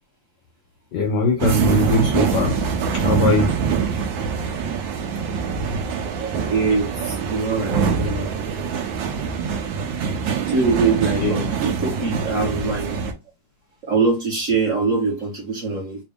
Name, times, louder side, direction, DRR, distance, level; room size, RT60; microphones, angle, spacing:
voice 1, 0.9-2.6 2.9-3.6 11.2-11.5, left 2 dB, 70° left, 1.0 m, -21 dB
sound 1, 1.4-13.1, right 6 dB, 70° right, 1.3 m, -24 dB
voice 2, 6.5-8.4 10.5-12.9 13.9-16.0, right 4 dB, 45° right, 1.4 m, -23 dB
3.5 x 2.6 x 3.4 m
omnidirectional pair, 2.3 m